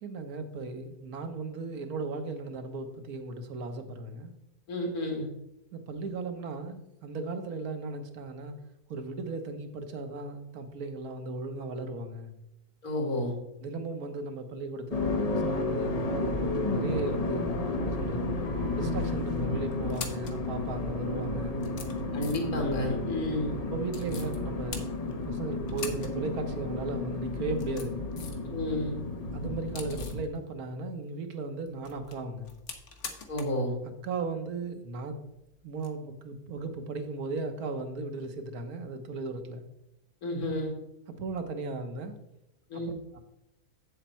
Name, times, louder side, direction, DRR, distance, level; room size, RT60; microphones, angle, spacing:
voice 1, 0.0-4.3 5.7-8.5 8.9-12.3 13.6-15.9 16.4-18.3 18.7-21.6 22.4-22.6 23.5-24.8 25.2-28.0 29.3-32.5 34.0-35.2 35.6-39.6 41.1-42.1 42.7-42.8 43.1-43.2, right 3 dB, 80° right, 7 dB, 1.5 m, -36 dB
voice 2, 4.7-5.3 12.8-13.3 22.1-23.5 28.5-28.9 33.3-33.7 40.2-40.7 42.7-42.9, left 1 dB, 80° left, 1 dB, 2.7 m, -31 dB
sound 1, 14.9-30.2, left 2 dB, 35° left, 0.7 m, -32 dB
sound 2, 18.4-19.0 19.7-20.4 21.1-21.2 21.6-22.6 23.9-24.4 24.7-25.4 25.7-26.2 26.5-26.6 27.4-28.5 28.8-30.3 31.7-33.6 33.9-34.0 35.8-35.9, left 5 dB, 55° left, 1.3 m, -43 dB
8.0 x 7.3 x 4.3 m, 0.86 s
omnidirectional pair, 1.6 m